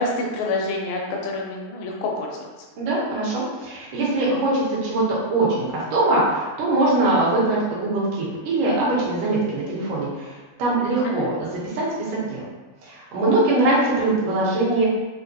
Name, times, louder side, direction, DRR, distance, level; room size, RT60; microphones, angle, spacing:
voice 1, 0.0-2.5 11.0-11.3, left 2 dB, 80° left, -1 dB, 2.2 m, -27 dB
voice 2, 2.8-10.3 10.6-12.5 12.8-14.9, right 2 dB, 70° right, -6 dB, 2.3 m, -22 dB
5.8 x 2.0 x 2.6 m, 1.2 s
omnidirectional pair, 4.3 m